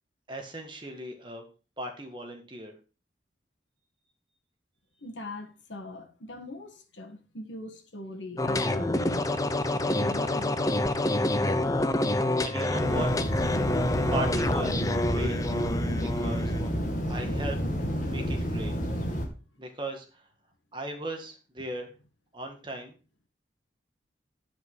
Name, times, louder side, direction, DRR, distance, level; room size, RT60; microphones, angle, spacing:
voice 1, 0.3-1.4 1.8-2.7 12.4-13.1 13.9-15.4 16.0-16.5 17.1-17.6 18.1-18.7 19.6-20.3 20.7-21.9 22.3-23.0, right 1 dB, 25° right, 1.7 m, -37 dB
voice 2, 5.0-9.3 9.8-10.5, left 2 dB, 90° left, 1.8 m, -41 dB
sound 1, 8.4-16.7, left 1 dB, 20° left, 0.5 m, -27 dB
sound 2, 12.7-19.3, equal, 45° left, 2.1 m, -30 dB
10.0 x 5.4 x 4.8 m
head